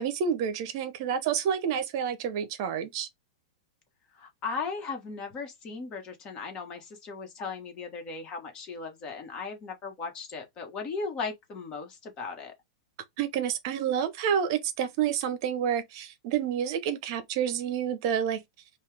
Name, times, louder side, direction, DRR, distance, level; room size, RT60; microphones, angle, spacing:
voice 1, 0.0-3.1 13.2-18.4, right 8 dB, 45° right, 0.8 m, -29 dB
voice 2, 4.1-12.5, left 4 dB, 25° left, 1.3 m, -37 dB
5.5 x 2.5 x 3.4 m
supercardioid pair, 160°, 3 cm